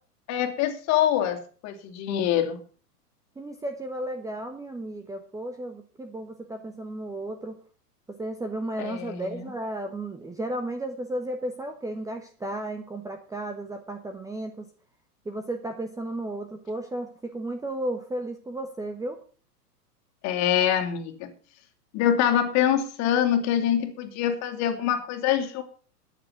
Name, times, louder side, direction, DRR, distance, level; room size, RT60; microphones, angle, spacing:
voice 1, 0.3-2.6 8.8-9.4 20.2-21.3 21.9-25.6, left 10 dB, 35° left, 5 dB, 2.7 m, -25 dB
voice 2, 3.4-7.6 8.1-14.7 15.2-19.2, right 1 dB, 5° right, 6 dB, 1.2 m, -34 dB
14.0 x 9.9 x 5.8 m, 0.40 s
figure-of-eight pair, 110°, 47 cm